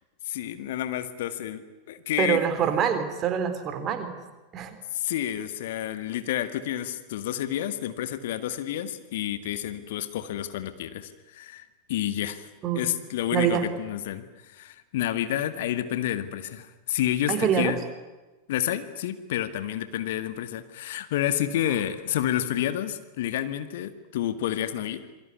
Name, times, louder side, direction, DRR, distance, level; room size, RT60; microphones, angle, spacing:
voice 1, 0.3-2.4 4.9-12.5 12.7-17.8 18.5-25.0, left 12 dB, 55° left, 11 dB, 1.9 m, -29 dB
voice 2, 2.2-4.2 4.5-4.8 12.6-12.9 13.3-13.6 17.3-17.7, right 8 dB, 30° right, 9 dB, 4.1 m, -25 dB
27.0 x 22.0 x 9.6 m, 1.1 s
figure-of-eight pair, 90°, 0 cm